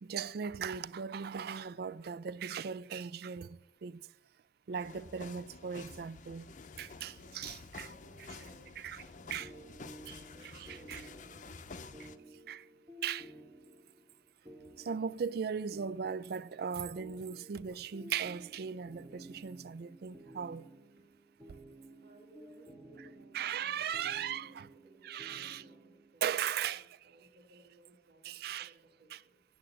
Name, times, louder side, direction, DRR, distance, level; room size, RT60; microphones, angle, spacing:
voice 1, 0.0-4.0 4.7-7.9 8.8-9.0 9.3-9.5 10.1-10.2 10.4-11.1 12.5-12.6 13.0-13.3 14.8-20.7 23.3-24.7 25.0-25.6 26.2-26.9 28.2-28.7 29.1-29.2, right 7 dB, 60° right, 0.4 m, -38 dB
voice 2, 4.7-5.0 6.8-11.9 20.9-21.0 22.0-26.4 26.7-29.4, right 1 dB, 85° right, 2.2 m, -62 dB
sound 1, 4.8-12.2, left 4 dB, 45° left, 0.6 m, -50 dB
sound 2, 9.4-26.1, right 1 dB, 20° right, 1.0 m, -54 dB
8.9 x 7.5 x 7.5 m
head